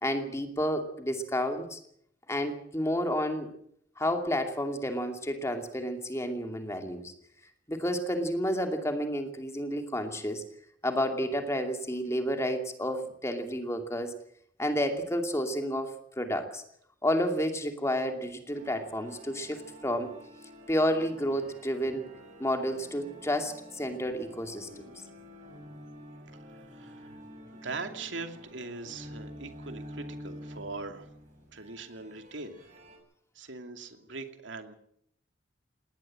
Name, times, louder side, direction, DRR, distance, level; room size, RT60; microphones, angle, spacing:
voice 1, 0.0-1.8 2.3-3.5 4.0-7.1 7.7-10.4 10.8-14.1 14.6-16.6 17.0-20.1 20.7-22.1 22.4-24.7, equal, 15° left, 5 dB, 2.6 m, -30 dB
sound 1, 18.5-33.0, equal, 40° right, 7.1 m, -48 dB
voice 2, 26.4-27.2 27.5-31.1 31.5-32.6 33.3-34.7, right 3 dB, 85° right, 6 dB, 2.6 m, -41 dB
19.0 x 18.5 x 7.7 m, 0.69 s
head